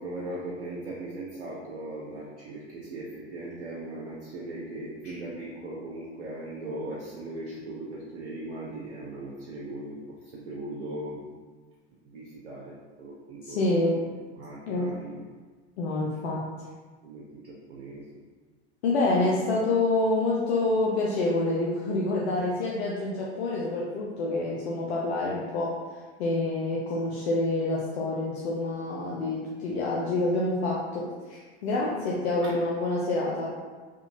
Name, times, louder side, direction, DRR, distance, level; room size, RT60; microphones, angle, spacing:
voice 1, 0.0-10.0 10.3-11.2 12.1-13.7 14.4-15.3 17.0-18.0 31.8-31.9 32.3-32.6, right 2 dB, 80° right, -5 dB, 0.7 m, -38 dB
voice 2, 13.4-14.0 14.7-14.9 15.8-16.4 18.8-25.7 26.2-33.5, left 2 dB, 70° left, -4 dB, 0.7 m, -27 dB
3.7 x 2.9 x 2.6 m, 1.4 s
hypercardioid pair, 90°, 34 cm